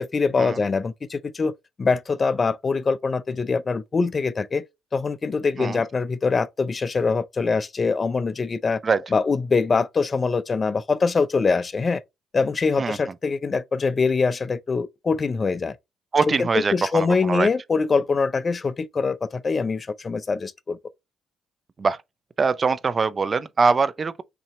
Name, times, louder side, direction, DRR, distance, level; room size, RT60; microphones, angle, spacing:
voice 1, 0.0-1.5 1.8-4.6 4.9-8.8 9.1-12.0 12.3-15.8 16.3-20.8, left 4 dB, 35° left, 0.4 m, -23 dB
voice 2, 16.1-17.5 21.8-22.0 22.4-24.2, right 4 dB, 35° right, 0.5 m, -23 dB
5.9 x 2.8 x 3.1 m
cardioid pair, 90°, 0 cm